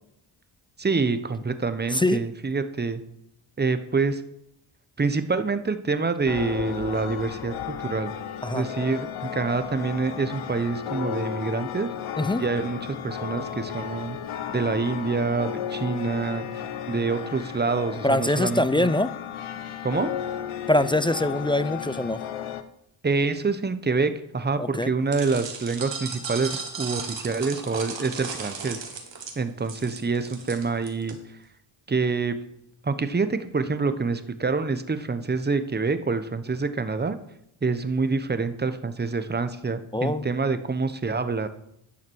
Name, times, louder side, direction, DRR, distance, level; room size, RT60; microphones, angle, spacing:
voice 1, 0.8-3.0 3.6-4.2 5.0-8.1 8.5-11.9 12.4-14.2 14.5-16.5 16.9-18.9 19.8-20.1 23.0-28.8 29.4-31.2 31.9-32.4 32.8-37.2 37.6-41.5, right 4 dB, 20° right, 0.9 m, -26 dB
voice 2, 1.9-2.2 8.4-8.6 12.2-12.4 18.0-19.1 20.7-22.2 24.6-24.9 39.9-40.3, left 1 dB, 10° left, 0.3 m, -23 dB
sound 1, 6.3-22.6, left 9 dB, 80° left, 0.8 m, -34 dB
sound 2, 25.1-31.1, right 5 dB, 60° right, 1.9 m, -36 dB
10.5 x 5.8 x 4.6 m
supercardioid pair, 50°, 49 cm